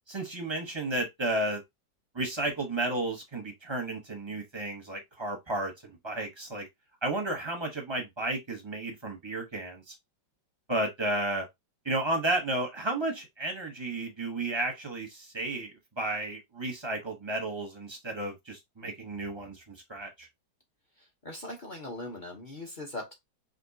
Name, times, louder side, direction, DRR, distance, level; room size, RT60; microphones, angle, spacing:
voice 1, 0.1-1.6 2.1-6.7 7.0-9.9 10.7-11.5 11.8-20.3, right 2 dB, 25° right, 0.7 m, -33 dB
voice 2, 21.2-23.1, left 1 dB, 35° left, 0.8 m, -40 dB
5.2 x 2.8 x 2.7 m
omnidirectional pair, 2.0 m